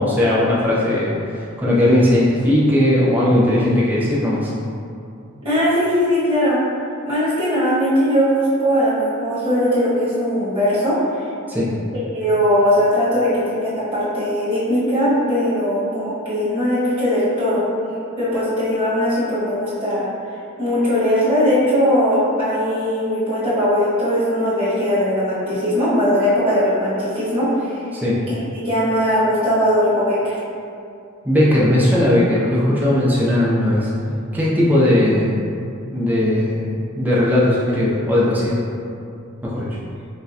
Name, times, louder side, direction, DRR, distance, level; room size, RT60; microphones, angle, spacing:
voice 1, 0.0-4.5 11.5-11.7 27.9-28.2 31.2-33.9 34.3-35.3 35.9-38.6 39.4-39.7, left 1 dB, 10° right, -8 dB, 0.5 m, -18 dB
voice 2, 5.4-6.6 7.0-10.9 12.1-17.6 18.2-20.1 20.6-27.8 28.3-30.3, equal, 25° right, -12 dB, 1.4 m, -19 dB
6.1 x 2.2 x 2.8 m, 2.5 s
head